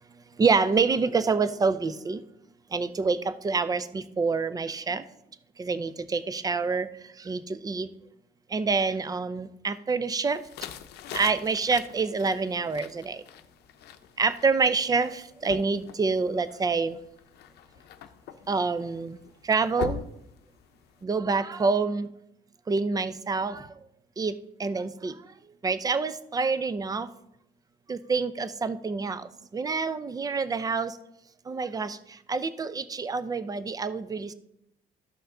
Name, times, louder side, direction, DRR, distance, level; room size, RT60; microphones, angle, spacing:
voice 1, 0.4-2.2 2.7-5.0 5.6-6.9 7.2-7.9 8.5-10.4 11.1-13.2 14.2-17.0 18.5-19.2 19.4-20.0 21.0-22.1 22.7-23.7 24.2-24.3 24.6-25.2 25.6-27.1 27.9-31.0 31.5-34.3, right 4 dB, 20° right, 14 dB, 0.5 m, -27 dB
sound 1, 10.3-21.0, left 9 dB, 75° left, 0.7 m, -43 dB
13.5 x 5.6 x 3.8 m, 0.81 s
cardioid pair, 110°, 17 cm